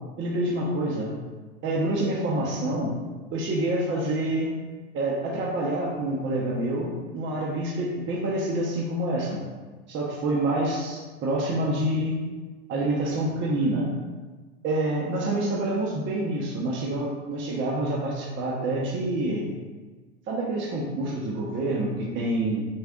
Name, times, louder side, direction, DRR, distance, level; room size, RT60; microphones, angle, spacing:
voice 1, 0.2-1.1 1.6-2.9 3.3-4.5 4.9-9.4 9.9-12.2 12.7-13.9 14.6-19.5 20.3-22.7, right 1 dB, 40° right, -3 dB, 1.2 m, -27 dB
8.1 x 4.6 x 2.6 m, 1.3 s
supercardioid pair, 120°, 31 cm